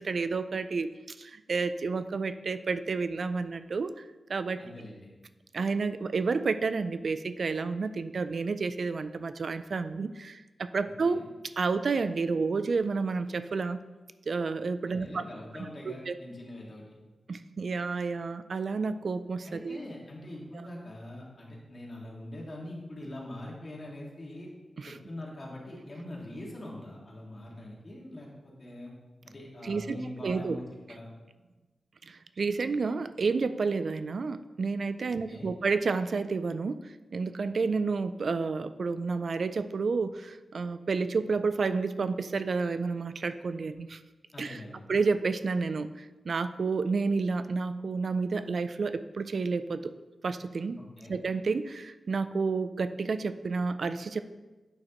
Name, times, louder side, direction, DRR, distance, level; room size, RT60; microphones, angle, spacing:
voice 1, 0.0-4.0 4.3-4.6 5.5-11.2 11.6-13.8 14.3-15.2 15.6-16.2 17.3-19.8 20.5-20.6 24.8-25.0 29.6-30.6 32.1-44.0 44.4-44.6 44.9-49.9 50.2-50.8 51.1-54.2, right 4 dB, 70° right, 11 dB, 0.3 m, -30 dB
voice 2, 4.5-5.1 11.0-11.3 14.9-17.0 19.4-24.5 24.8-28.9 29.2-31.1 35.1-35.5 44.3-44.8 51.0-51.2, left 1 dB, 45° left, -3 dB, 2.0 m, -43 dB
8.8 x 6.4 x 3.0 m, 1.2 s
wide cardioid pair, 75°, 0 cm